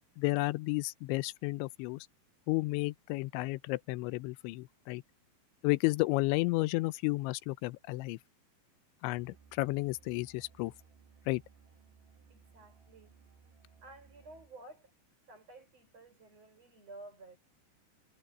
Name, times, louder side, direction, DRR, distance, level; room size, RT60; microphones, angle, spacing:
voice 1, 0.2-2.1 2.5-5.0 5.6-8.2 9.0-10.7 11.3-11.4, left 22 dB, 90° left, 3.0 m, -32 dB
Musical instrument, 9.1-14.6, right 6 dB, 85° right, 5.0 m, -61 dB
voice 2, 12.3-13.2 13.8-14.9 15.2-17.4, right 2 dB, 35° right, 7.4 m, -53 dB
omnidirectional pair, 5.2 m